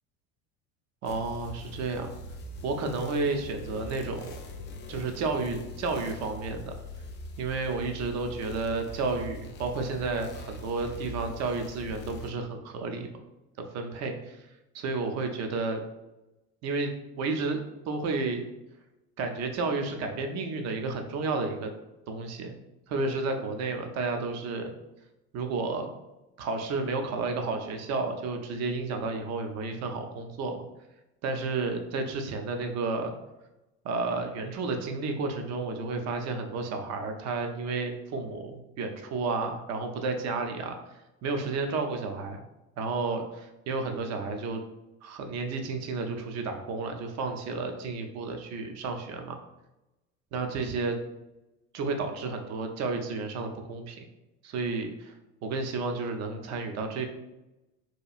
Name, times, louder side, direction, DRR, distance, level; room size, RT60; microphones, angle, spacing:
sound 1, 1.0-12.3, left 2 dB, 30° left, 0.4 m, -42 dB
voice 1, 1.0-2.1 2.6-4.4 4.9-6.7 7.4-13.2 13.7-14.5 14.7-15.8 16.6-16.9 17.2-18.5 19.2-21.7 22.1-22.6 22.9-24.7 25.3-25.9 26.4-30.6 31.2-33.1 33.8-42.4 42.8-44.6 45.0-49.4 50.3-51.0 51.7-54.1 54.4-55.1 55.4-57.0, right 3 dB, 40° right, 5 dB, 0.5 m, -31 dB
3.0 x 2.3 x 2.4 m, 0.97 s
hypercardioid pair, 70°, 40 cm